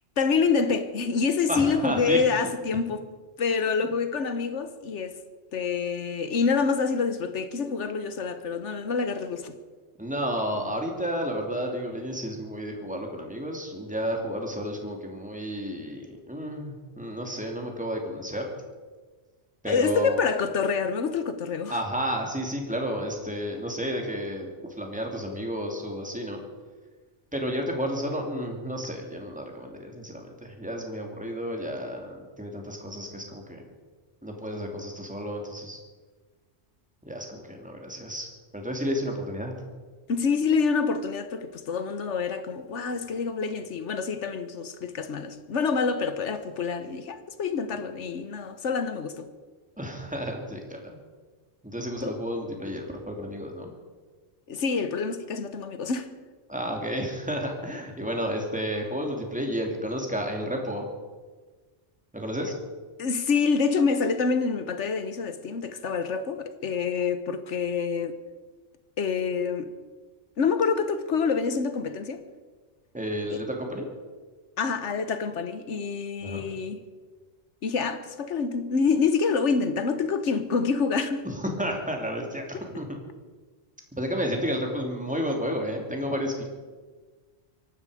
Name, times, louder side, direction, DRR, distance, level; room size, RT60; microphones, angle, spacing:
voice 1, 0.2-3.0 3.4-5.2 5.5-9.5 19.7-21.8 40.1-49.3 52.0-52.2 54.5-56.1 63.0-68.2 69.0-69.7 70.4-72.2 73.3-73.4 74.6-76.8 77.6-81.3, left 5 dB, 90° left, 1.4 m, -27 dB
voice 2, 1.5-2.5 10.0-18.4 19.6-20.3 21.7-26.4 27.3-33.6 34.2-35.8 37.0-39.5 49.8-51.0 51.6-53.7 56.5-60.9 62.1-62.5 72.9-73.9 76.2-76.4 81.2-82.9 84.0-86.4, equal, 5° right, 2.6 m, -31 dB
24.0 x 12.0 x 5.0 m
omnidirectional pair, 1.2 m